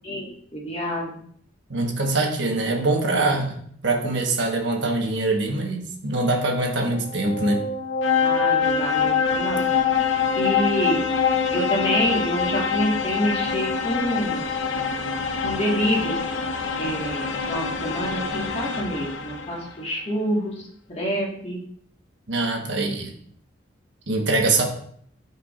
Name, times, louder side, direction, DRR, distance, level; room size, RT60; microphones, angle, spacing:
voice 1, 0.5-1.2 8.2-9.7 10.1-11.1 11.5-14.4 15.4-16.1 16.8-20.6 20.9-21.6, equal, 30° left, -3 dB, 1.6 m, -27 dB
voice 2, 1.7-3.6 3.8-7.6 22.3-23.1 24.1-24.6, right 2 dB, 70° right, 1 dB, 1.3 m, -23 dB
sound 1, 6.9-19.7, left 6 dB, 90° left, 0.7 m, -25 dB
11.5 x 4.6 x 2.5 m, 0.63 s
head